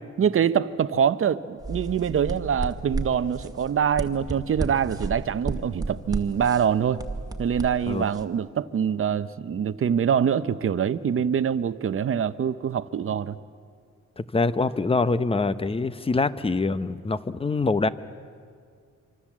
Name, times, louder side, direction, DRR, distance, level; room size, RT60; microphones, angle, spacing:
voice 1, 0.2-7.0 7.4-13.4, right 8 dB, 45° right, 0.8 m, -24 dB
sound 1, 1.6-8.2, right 2 dB, 15° right, 1.9 m, -33 dB
voice 2, 14.2-17.9, left 3 dB, 20° left, 0.8 m, -24 dB
25.5 x 25.5 x 7.5 m
cardioid pair, 125°, 29 cm